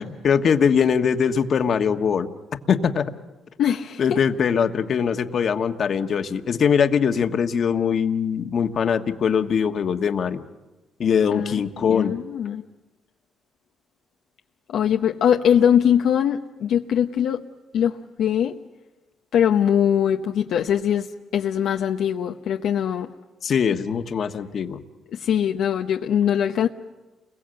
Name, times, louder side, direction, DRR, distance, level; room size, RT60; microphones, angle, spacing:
voice 1, 0.0-2.3 2.7-3.1 4.0-10.4 11.0-12.2 23.4-24.8, left 7 dB, 55° left, 1.4 m, -22 dB
voice 2, 3.6-4.2 11.3-11.5 11.8-12.6 14.7-17.5 17.7-18.6 19.3-23.1 25.1-26.7, left 9 dB, 75° left, 0.8 m, -22 dB
29.5 x 22.0 x 7.8 m
cardioid pair, 90°, 0 cm